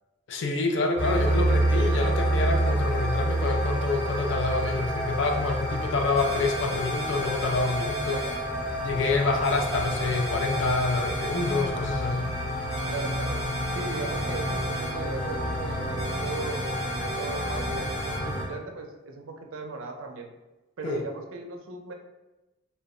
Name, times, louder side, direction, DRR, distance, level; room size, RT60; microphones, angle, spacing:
voice 1, 0.3-8.2 8.8-12.3 20.8-21.0, left 3 dB, 65° left, 2 dB, 0.4 m, -27 dB
sound 1, 1.0-18.5, right 1 dB, 5° left, 0.6 m, -29 dB
sound 2, 6.2-8.4 9.4-11.6 12.7-14.9 16.0-18.2, right 1 dB, 40° left, 0.8 m, -38 dB
voice 2, 12.9-13.4 13.7-20.3 20.8-21.9, right 3 dB, 75° right, 2 dB, 0.4 m, -37 dB
2.1 x 2.0 x 3.5 m, 1.0 s
head